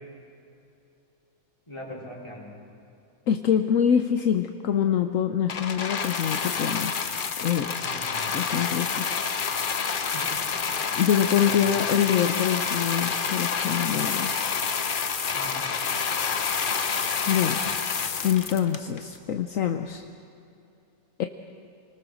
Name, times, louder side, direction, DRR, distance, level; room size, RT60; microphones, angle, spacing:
voice 1, 1.7-2.5 7.8-8.4 10.1-10.4 11.4-11.6 15.3-15.7, equal, 20° left, -4 dB, 4.3 m, -40 dB
voice 2, 3.3-7.1 7.4-9.1 11.0-14.3 17.3-17.6 18.2-20.0 21.2-21.3, left 9 dB, 70° left, 7 dB, 1.1 m, -25 dB
sound 1, 5.5-19.2 19.9-20.0, left 6 dB, 45° left, 0.9 m, -28 dB
25.5 x 20.0 x 6.4 m, 2.6 s
omnidirectional pair, 1.5 m